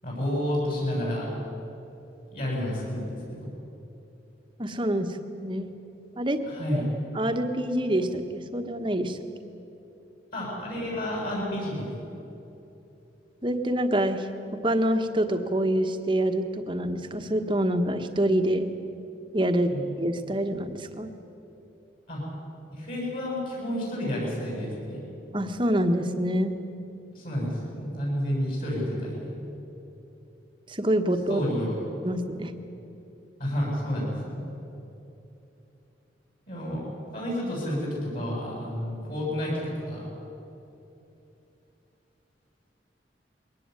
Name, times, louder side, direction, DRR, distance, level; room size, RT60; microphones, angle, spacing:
voice 1, 0.0-1.3 2.3-3.5 6.5-6.8 10.3-11.9 19.7-19.8 22.1-22.2 22.7-25.0 27.1-29.4 31.3-31.8 33.4-34.4 36.5-40.1, left 1 dB, 50° left, -4 dB, 8.0 m, -30 dB
voice 2, 4.6-5.7 6.2-6.4 6.7-6.8 7.1-9.2 13.4-14.3 14.6-18.7 19.3-19.7 20.0-21.1 25.3-26.5 30.7-31.4 32.0-32.5, right 1 dB, 25° right, 7 dB, 1.3 m, -26 dB
22.0 x 18.5 x 9.7 m, 2.9 s
head